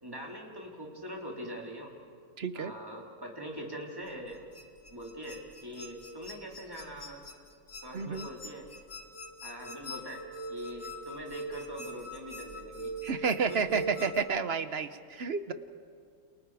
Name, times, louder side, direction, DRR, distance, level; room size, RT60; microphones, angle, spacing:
voice 1, 0.0-1.9 2.5-4.4 4.9-7.2 7.8-8.7 9.4-10.2 10.5-13.8, equal, 10° right, -1 dB, 3.4 m, -43 dB
voice 2, 2.4-2.7 7.9-8.3 13.0-15.5, right 5 dB, 50° right, 11 dB, 0.8 m, -30 dB
sound 1, 4.1-14.2, right 1 dB, 35° left, 1.8 m, -42 dB
30.0 x 29.0 x 4.9 m, 2.2 s
omnidirectional pair, 2.0 m